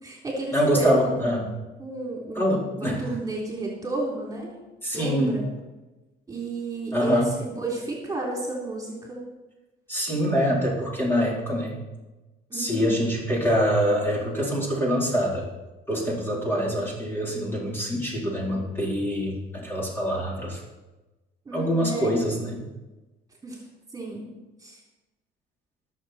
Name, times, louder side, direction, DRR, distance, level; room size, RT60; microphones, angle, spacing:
voice 1, 0.0-1.5 1.8-4.5 4.9-5.5 6.3-9.2 12.5-13.1 21.5-22.4 23.4-23.6 23.9-24.3 24.6-24.8, right 2 dB, 20° right, -2 dB, 3.9 m, -32 dB
voice 2, 0.5-1.4 2.3-3.0 4.8-5.4 6.9-7.3 9.9-11.8 12.5-15.5 15.9-20.6 21.5-22.6, equal, 10° left, -4 dB, 4.3 m, -25 dB
21.0 x 7.5 x 4.5 m, 1.1 s
cardioid pair, 110°, 17 cm